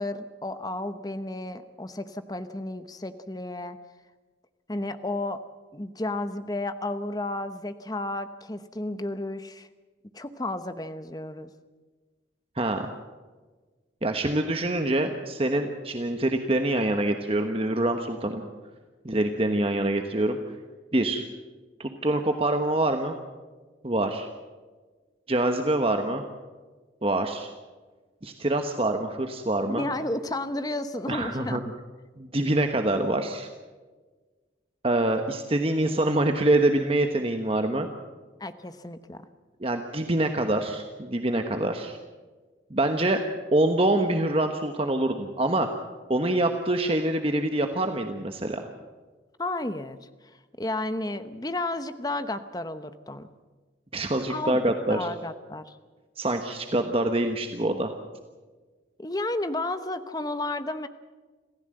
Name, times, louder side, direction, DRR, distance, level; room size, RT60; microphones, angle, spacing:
voice 1, 0.0-3.8 4.7-5.4 5.7-9.7 10.1-11.5 29.7-31.6 38.4-39.3 49.4-50.0 50.6-53.3 54.2-54.6 54.9-55.8 59.0-60.9, left 2 dB, 20° left, 11 dB, 0.9 m, -32 dB
voice 2, 12.6-12.9 14.0-18.4 19.0-20.4 20.9-21.2 21.8-23.2 23.8-24.3 25.3-26.2 27.0-27.5 28.2-29.9 31.1-31.6 32.2-33.5 34.8-37.9 39.6-42.0 42.7-43.2 43.5-45.7 46.1-48.6 53.9-55.1 56.2-57.9, right 1 dB, 30° right, 5 dB, 1.2 m, -25 dB
27.0 x 15.0 x 7.8 m, 1.4 s
head